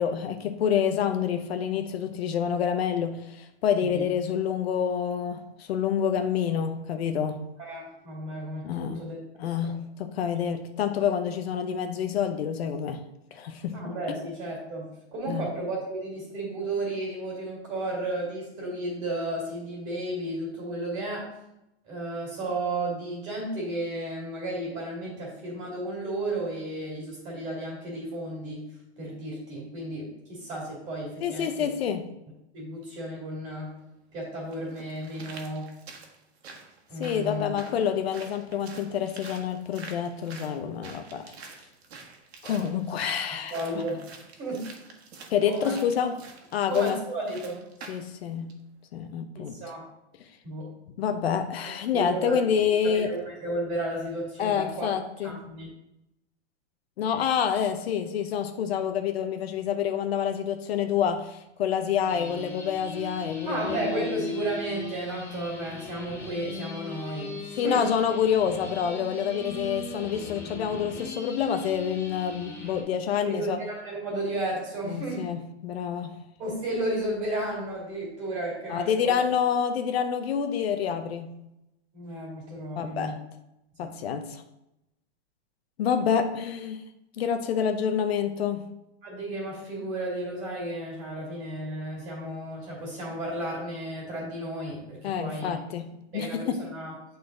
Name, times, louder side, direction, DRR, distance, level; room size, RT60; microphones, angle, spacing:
voice 1, 0.0-7.4 8.6-9.1 9.4-13.0 13.3-13.8 14.1-14.2 15.3-15.4 31.2-32.1 37.0-41.3 42.4-43.8 45.3-46.2 46.5-47.0 47.9-48.6 48.9-49.6 51.0-53.1 54.4-55.4 57.0-63.8 67.5-73.6 74.9-76.2 78.7-81.4 82.8-83.2 83.8-84.4 85.8-86.8 87.2-88.7 95.0-96.7, left 8 dB, 65° left, 7 dB, 0.7 m, -27 dB
voice 2, 7.6-9.2 9.6-9.7 13.7-21.3 21.8-28.7 29.0-31.7 32.5-33.7 34.1-35.7 36.9-37.5 43.2-44.0 44.4-44.7 45.4-45.8 46.0-46.1 46.7-47.6 49.3-49.8 50.4-50.7 51.6-52.4 52.9-54.9 55.2-55.7 63.5-67.9 73.2-75.3 76.4-79.2 81.9-83.2 83.8-83.9 89.0-95.6 96.1-96.9, right 1 dB, 20° right, -3 dB, 2.5 m, -33 dB
sound 1, 33.7-33.8 34.5-48.1 48.5-48.6, right 4 dB, 65° right, 1.5 m, -47 dB
sound 2, 62.1-72.8, left 2 dB, 10° left, 0.4 m, -38 dB
8.8 x 4.1 x 3.8 m, 0.87 s
supercardioid pair, 175°, 34 cm